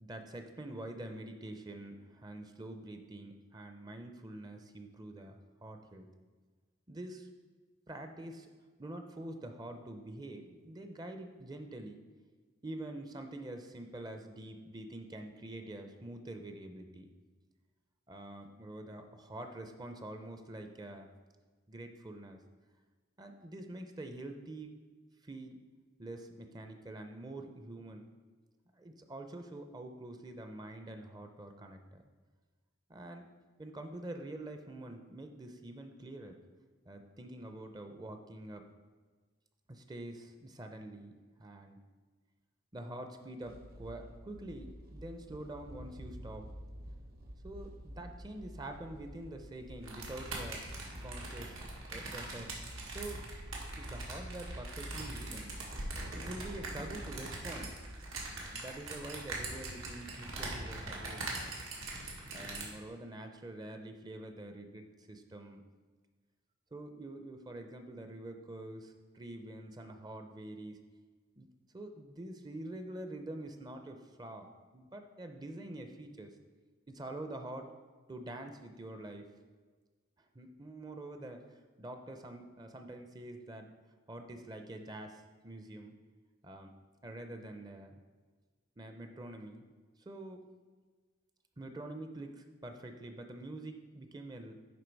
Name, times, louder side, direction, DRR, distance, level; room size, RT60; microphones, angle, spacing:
voice 1, 0.0-6.1 6.9-7.3 7.9-8.5 8.8-12.0 12.6-17.1 18.1-21.1 21.7-22.4 23.2-24.7 25.2-25.6 26.0-28.1 28.7-32.0 32.9-33.3 33.6-36.4 36.9-38.6 39.7-41.1 41.4-41.8 42.7-46.5 47.4-50.6 51.0-51.6 51.9-52.6 52.9-53.2 53.8-55.6 56.2-57.8 58.5-61.6 62.3-65.6 66.7-70.8 71.4-71.5 71.7-74.5 74.7-76.3 76.9-77.7 78.1-79.3 80.3-83.7 84.1-85.9 86.4-86.7 87.0-88.0 88.8-89.7 90.0-90.4 91.6-94.6, right 1 dB, 20° right, 6 dB, 0.5 m, -46 dB
sound 1, 43.4-58.4, equal, 50° right, 0.8 m, -48 dB
sound 2, 49.8-62.6, right 2 dB, 85° right, 1.6 m, -42 dB
10.5 x 3.8 x 4.6 m, 1.4 s
head